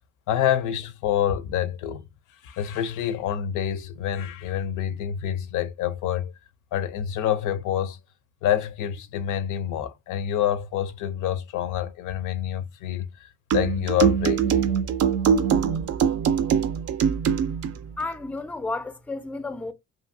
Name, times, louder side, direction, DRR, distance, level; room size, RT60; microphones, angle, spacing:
voice 1, 0.3-2.0 2.4-6.3 6.7-8.0 8.4-14.7, left 10 dB, 85° left, 0.5 m, -27 dB
sound 1, 13.5-17.8, right 7 dB, 55° right, 0.4 m, -22 dB
voice 2, 18.0-19.7, left 3 dB, 5° left, 0.4 m, -32 dB
2.6 x 2.6 x 2.5 m
cardioid pair, 90°, 30 cm